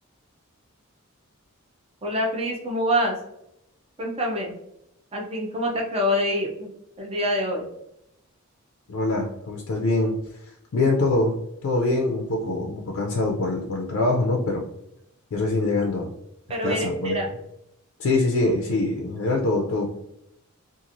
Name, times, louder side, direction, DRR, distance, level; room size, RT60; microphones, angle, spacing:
voice 1, 2.0-3.2 4.0-4.6 5.1-6.7 7.0-7.7 16.5-17.3, equal, 30° right, 0 dB, 0.6 m, -25 dB
voice 2, 8.9-10.2 10.7-11.4 11.6-14.6 15.3-16.1 16.6-17.2 18.0-19.9, left 2 dB, 60° left, 0 dB, 0.4 m, -24 dB
2.9 x 2.4 x 2.5 m, 0.81 s
head